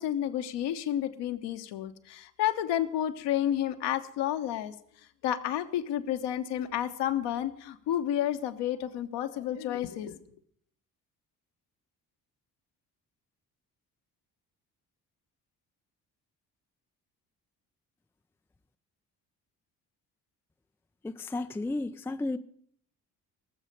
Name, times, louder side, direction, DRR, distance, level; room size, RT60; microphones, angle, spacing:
voice 1, 0.0-4.7 5.2-10.2, left 11 dB, 60° left, 1.2 m, -31 dB
voice 2, 21.0-22.4, left 2 dB, 5° left, 0.5 m, -33 dB
19.0 x 7.4 x 6.8 m
figure-of-eight pair, 40°, 48 cm